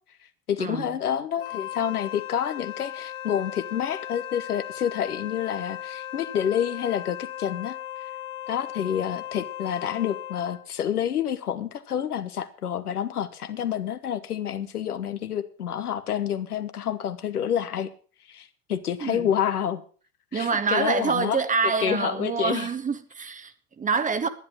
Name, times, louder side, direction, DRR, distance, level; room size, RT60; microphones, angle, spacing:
voice 1, 0.5-7.8 8.5-17.9 18.3-19.8 20.3-22.7, left 9 dB, 75° left, 1.2 m, -28 dB
Wind instrument woodwind instrument, 1.4-10.7, left 12 dB, 45° left, 1.5 m, -37 dB
voice 2, 20.3-24.3, right 5 dB, 15° right, 1.0 m, -26 dB
10.5 x 10.5 x 5.9 m
figure-of-eight pair, 80°, 45 cm